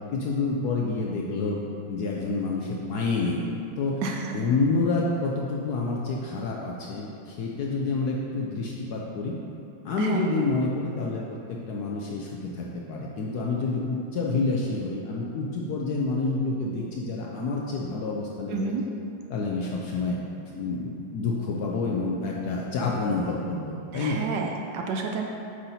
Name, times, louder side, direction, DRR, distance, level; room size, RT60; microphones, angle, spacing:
voice 1, 0.1-1.6 1.9-3.4 3.8-4.0 4.3-9.4 9.8-18.7 19.3-20.2 20.5-24.2, left 3 dB, 80° left, -2 dB, 0.8 m, -28 dB
voice 2, 4.0-4.4 10.0-10.2 18.5-18.8 23.9-25.2, right 4 dB, 75° right, 1 dB, 1.0 m, -30 dB
8.0 x 5.7 x 2.7 m, 2.7 s
omnidirectional pair, 2.3 m